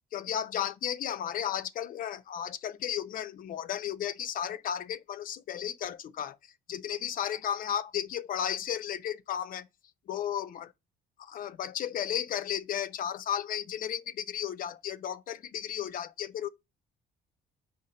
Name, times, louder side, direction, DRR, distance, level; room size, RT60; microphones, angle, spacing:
voice 1, 0.1-6.4 6.7-9.7 10.1-10.7 11.2-16.5, left 9 dB, 55° left, 0.6 m, -34 dB
5.1 x 4.2 x 5.0 m
cardioid pair, 110°, 17 cm